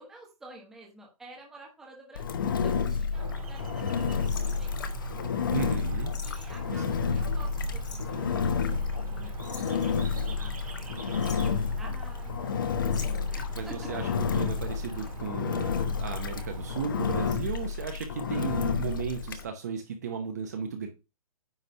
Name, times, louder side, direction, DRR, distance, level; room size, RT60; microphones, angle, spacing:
voice 1, 0.0-5.0 6.2-12.6 13.0-13.9, right 2 dB, ahead, -2 dB, 1.1 m, -50 dB
Engine, 2.1-19.4, left 6 dB, 35° left, 0.8 m, -30 dB
sound 1, 3.1-16.9, right 4 dB, 90° right, 1.8 m, -42 dB
sound 2, 4.2-5.1 5.7-5.8 6.1-6.6 7.8-8.2 9.4-10.5 11.0-11.6 12.9-13.4 14.4-14.8 15.1-15.2, left 6 dB, 55° left, 1.6 m, -46 dB
voice 2, 5.5-6.1 6.7-6.8 13.5-15.7 16.0-20.9, right 7 dB, 30° right, 5 dB, 0.8 m, -35 dB
9.5 x 3.3 x 5.4 m, 0.28 s
hypercardioid pair, 180°, 19 cm